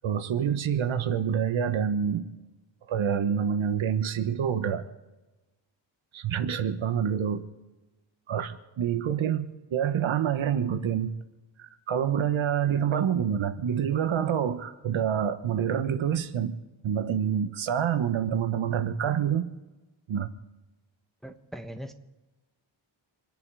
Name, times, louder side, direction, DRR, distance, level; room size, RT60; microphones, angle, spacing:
voice 1, 0.0-2.3 2.9-4.8 6.1-7.4 8.3-11.1 11.6-16.5 16.8-19.5 20.1-20.3, right 8 dB, 75° right, 10 dB, 1.2 m, -27 dB
voice 2, 21.2-21.9, equal, ahead, 6 dB, 1.2 m, -40 dB
27.5 x 11.0 x 4.9 m, 1.1 s
wide cardioid pair, 130°, 47 cm